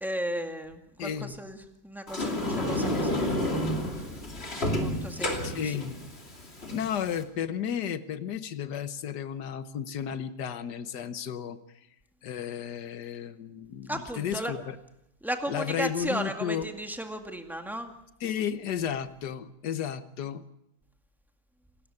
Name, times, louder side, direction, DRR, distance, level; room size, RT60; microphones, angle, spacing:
voice 1, 0.0-1.6 1.8-3.8 4.8-5.7 13.9-14.5 15.2-17.9, right 1 dB, ahead, 5 dB, 2.0 m, -35 dB
voice 2, 1.0-1.3 5.4-6.0 6.7-11.6 12.2-14.8 15.5-16.7 18.2-20.4, left 8 dB, 70° left, 12 dB, 1.7 m, -33 dB
Sliding door, 2.1-7.2, left 1 dB, 35° left, 3.1 m, -30 dB
28.0 x 13.5 x 9.7 m, 0.84 s
omnidirectional pair, 1.8 m